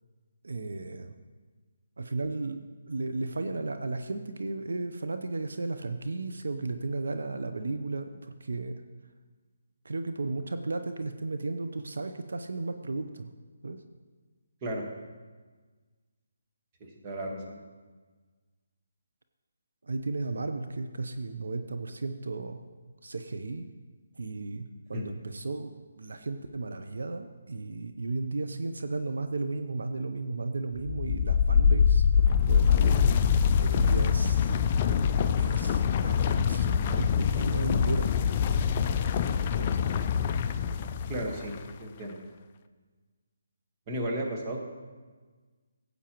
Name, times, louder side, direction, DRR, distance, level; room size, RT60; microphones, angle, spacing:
voice 1, 0.4-1.1 2.0-2.6 2.9-8.7 9.8-13.3 13.6-13.8 19.8-22.6 23.0-23.7 24.2-34.5 35.4-38.1 39.5-39.8, right 3 dB, 80° right, 8 dB, 0.6 m, -34 dB
voice 2, 17.0-17.6 24.9-25.0 41.1-41.5 41.8-42.2 43.9-44.6, right 1 dB, 25° right, 0 dB, 1.4 m, -33 dB
sound 1, 30.8-41.6, left 7 dB, 30° left, 0.4 m, -24 dB
15.5 x 8.2 x 3.0 m, 1.4 s
hypercardioid pair, 160°, 0 cm